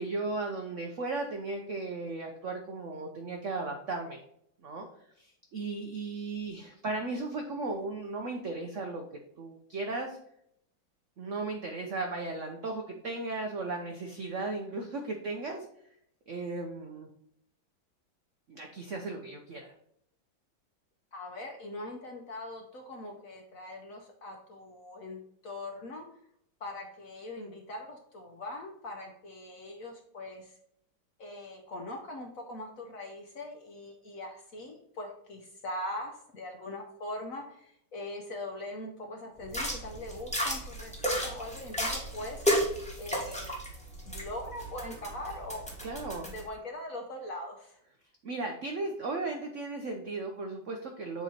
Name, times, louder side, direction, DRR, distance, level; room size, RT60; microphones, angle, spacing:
voice 1, 0.0-4.2 4.6-4.9 5.2-9.0 9.4-10.2 11.2-15.6 16.3-17.1 18.5-19.7 45.8-46.3 48.2-51.2, right 3 dB, 70° right, 3 dB, 0.7 m, -36 dB
voice 2, 21.1-26.1 26.6-30.6 31.2-42.4 43.0-43.6 44.1-45.6 46.2-47.8, left 1 dB, 60° left, 1 dB, 0.9 m, -41 dB
sound 1, 39.4-46.4, equal, 5° left, 0.9 m, -33 dB
7.6 x 3.1 x 4.2 m, 0.72 s
omnidirectional pair, 2.2 m